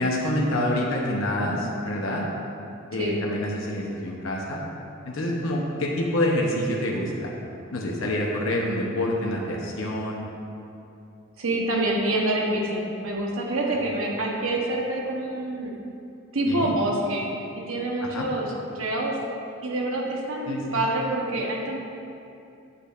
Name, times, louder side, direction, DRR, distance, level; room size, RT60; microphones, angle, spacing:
voice 1, 0.0-2.3 2.9-4.6 5.0-7.3 7.7-10.3 16.5-16.7 18.0-18.3 20.5-20.8, left 1 dB, 70° left, -2 dB, 0.8 m, -27 dB
voice 2, 11.4-15.7 16.3-17.3 17.6-18.5 18.7-19.2 19.6-21.8, right 1 dB, 75° right, -1 dB, 1.0 m, -26 dB
8.4 x 8.2 x 2.5 m, 2.7 s
head